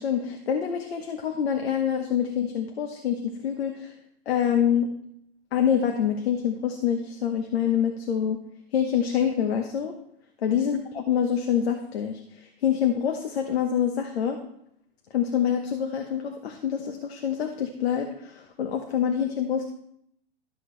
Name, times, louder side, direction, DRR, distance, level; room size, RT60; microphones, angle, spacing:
voice 1, 0.0-3.9 4.3-4.9 5.5-8.4 8.7-9.9 10.4-14.4 15.1-19.6, left 8 dB, 80° left, 4 dB, 1.1 m, -26 dB
12.5 x 6.4 x 3.3 m, 0.72 s
hypercardioid pair, 140°, 30 cm